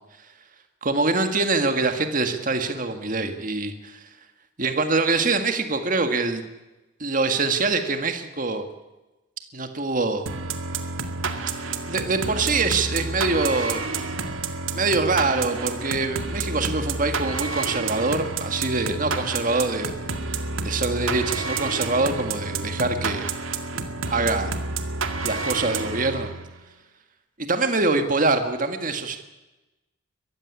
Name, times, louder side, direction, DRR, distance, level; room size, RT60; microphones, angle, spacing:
voice 1, 0.8-4.0 4.6-6.4 7.0-8.6 9.5-10.3 11.6-13.8 14.7-23.3 23.7-23.8 24.1-24.5 25.2-26.3 27.4-29.2, right 3 dB, 40° right, 7 dB, 1.8 m, -24 dB
sound 1, 10.3-26.6, right 3 dB, 90° right, 2.1 m, -29 dB
23.0 x 14.5 x 9.8 m, 1.1 s
head